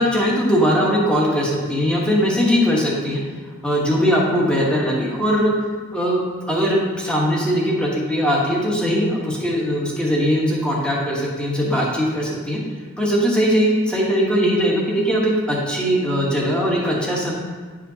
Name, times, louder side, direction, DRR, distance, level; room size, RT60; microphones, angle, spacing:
voice 1, 0.0-3.2 3.6-5.5 5.9-12.6 13.0-17.3, equal, 5° left, -4 dB, 1.1 m, -20 dB
9.7 x 5.0 x 2.8 m, 1.4 s
head